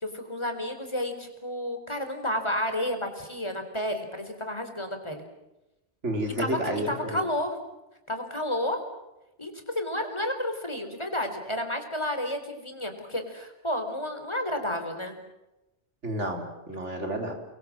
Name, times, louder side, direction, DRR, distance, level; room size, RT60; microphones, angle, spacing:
voice 1, 0.0-5.3 6.4-6.6 6.9-7.6 8.1-8.8 9.4-15.1, left 1 dB, 25° left, 6 dB, 4.2 m, -31 dB
voice 2, 6.0-7.2 16.0-17.3, right 1 dB, 85° right, 3 dB, 4.7 m, -30 dB
30.0 x 22.5 x 7.6 m, 0.97 s
omnidirectional pair, 1.2 m